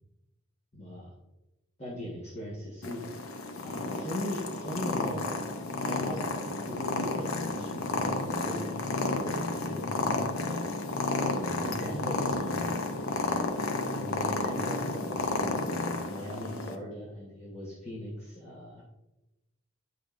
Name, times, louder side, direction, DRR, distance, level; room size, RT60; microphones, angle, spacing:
voice 1, 0.7-1.1 1.8-3.2 3.6-5.4 5.8-6.3 6.7-10.5 11.1-12.7 13.9-18.8, equal, 30° left, -6 dB, 1.4 m, -39 dB
Purr, 2.8-16.7, left 3 dB, 85° left, 0.7 m, -32 dB
10.0 x 5.2 x 2.5 m, 0.97 s
head